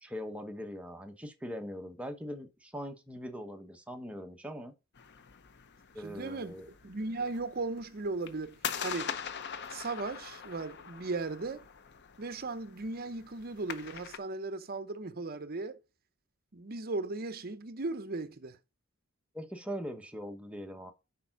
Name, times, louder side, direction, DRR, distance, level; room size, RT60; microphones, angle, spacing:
voice 1, 0.0-4.7 5.9-6.7 19.3-20.9, equal, 5° right, 1.0 m, -41 dB
sound 1, 4.9-14.2, left 7 dB, 55° left, 0.7 m, -43 dB
voice 2, 6.0-9.2 9.7-11.7 12.2-15.8 16.5-18.6, right 3 dB, 45° right, 0.8 m, -37 dB
6.8 x 5.0 x 4.7 m
head